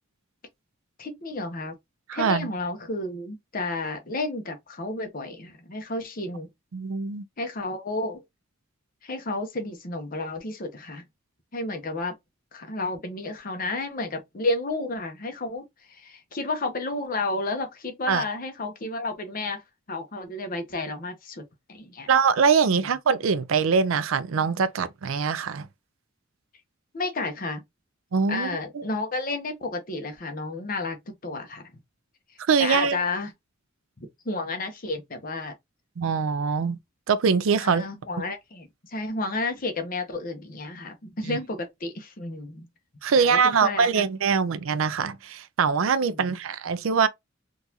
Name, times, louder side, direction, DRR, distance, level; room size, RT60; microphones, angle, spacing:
voice 1, 1.0-1.8 2.1-6.5 7.4-8.2 9.0-11.0 11.5-12.1 12.5-19.6 19.9-22.1 22.8-22.9 26.9-27.6 28.3-31.7 32.6-33.3 34.2-35.5 37.6-42.7 43.1-44.0 46.1-46.4, left 2 dB, 45° left, 0.8 m, -31 dB
voice 2, 2.1-2.5 6.7-7.2 18.1-18.2 22.1-25.7 28.1-28.5 28.7-28.8 32.5-33.0 36.0-36.8 37.1-37.8 41.3-41.4 43.0-47.1, right 5 dB, 75° right, 0.4 m, -23 dB
3.9 x 2.4 x 2.7 m
head